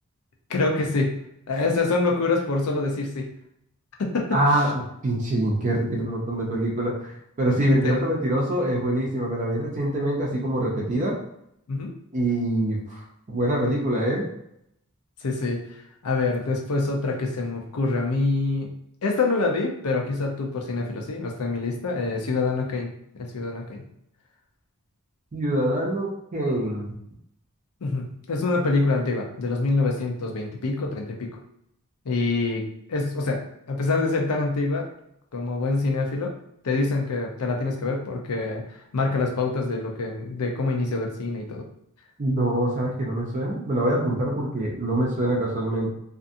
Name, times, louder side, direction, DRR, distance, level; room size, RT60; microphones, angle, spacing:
voice 1, 0.5-1.2 1.5-3.3 4.0-4.7 7.5-8.0 11.7-11.9 15.2-15.6 16.0-18.7 19.0-23.8 27.8-31.3 32.0-32.6 32.9-33.4 33.7-34.9 35.3-36.3 36.6-38.6 38.9-41.6, left 3 dB, 85° left, 1 dB, 0.6 m, -25 dB
voice 2, 4.3-4.7 5.0-7.1 7.4-11.1 12.1-13.0 13.3-14.2 25.3-26.9 42.2-45.9, right 1 dB, 35° right, -2 dB, 0.5 m, -24 dB
2.5 x 2.5 x 2.5 m, 0.76 s
head